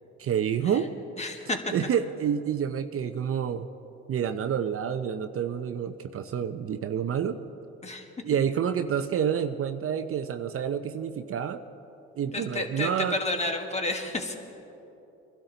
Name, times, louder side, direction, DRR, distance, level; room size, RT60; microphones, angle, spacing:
voice 1, 0.2-0.9 1.7-3.7 4.1-7.4 8.2-11.6 12.2-13.2, right 8 dB, 45° right, 9 dB, 0.7 m, -28 dB
voice 2, 1.2-1.7 7.8-8.0 12.3-12.9 13.2-14.3, left 2 dB, 20° left, 4 dB, 1.6 m, -31 dB
22.5 x 12.0 x 4.0 m, 3.0 s
supercardioid pair, 70°, 31 cm